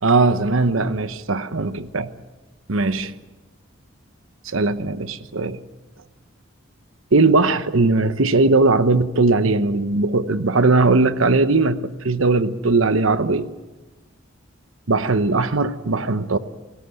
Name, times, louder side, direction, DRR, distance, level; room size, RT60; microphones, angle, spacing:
voice 1, 0.0-2.1 2.7-3.1 4.4-5.6 7.1-11.8 12.0-13.5 14.9-16.4, right 3 dB, 75° right, 1.0 m, -19 dB
28.5 x 17.5 x 7.9 m
head